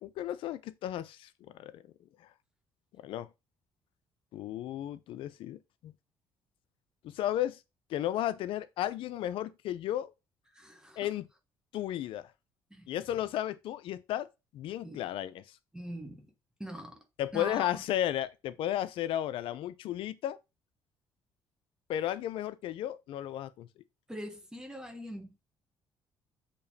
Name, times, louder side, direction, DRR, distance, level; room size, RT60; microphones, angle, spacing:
voice 1, 0.0-1.8 3.0-3.3 4.3-5.9 7.0-7.6 7.9-10.1 11.0-11.3 11.7-12.3 12.9-14.3 14.5-15.4 17.2-20.4 21.9-23.7, left 12 dB, 70° left, 0.4 m, -34 dB
voice 2, 10.5-11.1 12.7-12.9 14.8-15.0 15.7-16.3 16.6-17.0 17.3-17.8 24.1-25.3, equal, 10° right, 0.9 m, -42 dB
6.8 x 2.9 x 2.7 m
cardioid pair, 80°, 9 cm